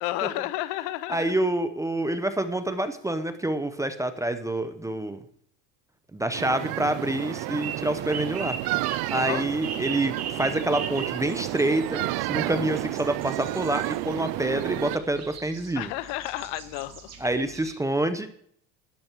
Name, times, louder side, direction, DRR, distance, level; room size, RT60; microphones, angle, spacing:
voice 1, 0.0-1.3 9.1-9.4 15.8-17.1, left 16 dB, 70° left, 16 dB, 0.9 m, -31 dB
voice 2, 1.1-5.2 6.1-8.6 9.1-15.9 17.2-18.3, right 1 dB, 5° right, 9 dB, 0.6 m, -27 dB
sound 1, 6.3-15.0, right 19 dB, 55° right, 0.5 m, -31 dB
sound 2, 7.6-17.7, right 6 dB, 35° right, 2.4 m, -40 dB
12.5 x 10.5 x 4.5 m, 0.64 s
cardioid pair, 145°, 44 cm